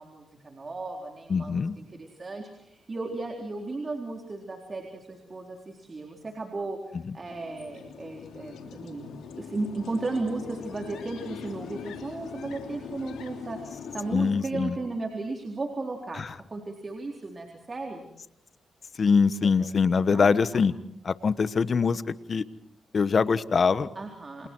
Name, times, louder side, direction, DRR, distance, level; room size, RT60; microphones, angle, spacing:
voice 1, 0.0-9.1 9.3-16.2 16.5-18.1 19.4-19.7 20.1-20.3 23.9-24.5, right 3 dB, 40° right, 2 dB, 4.0 m, -35 dB
voice 2, 1.3-1.7 14.1-14.8 16.1-16.3 19.0-20.7 21.0-22.4 22.9-23.9, left 5 dB, 55° left, 15 dB, 1.3 m, -23 dB
sound 1, 7.3-14.2, left 7 dB, 85° left, 3.0 m, -42 dB
29.5 x 28.0 x 4.7 m, 0.72 s
supercardioid pair, 45°, 0 cm